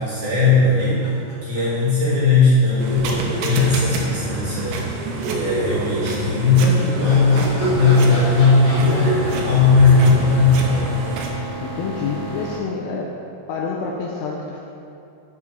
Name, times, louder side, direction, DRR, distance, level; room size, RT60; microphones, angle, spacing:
voice 1, 0.0-4.8 5.3-10.9, left 3 dB, 65° right, -8 dB, 2.1 m, -17 dB
sound 1, 0.7-2.1 2.4-2.5 2.9-5.1 5.4-5.5 6.5-10.8, equal, 60° left, 1.7 m, -34 dB
sound 2, 2.8-11.3, right 2 dB, 85° right, 2.9 m, -26 dB
sound 3, 7.6-12.6, right 2 dB, 45° right, 1.6 m, -32 dB
voice 2, 11.6-13.2 13.5-14.6, left 5 dB, 80° left, -1 dB, 2.5 m, -27 dB
9.4 x 3.6 x 6.0 m, 2.6 s
omnidirectional pair, 5.3 m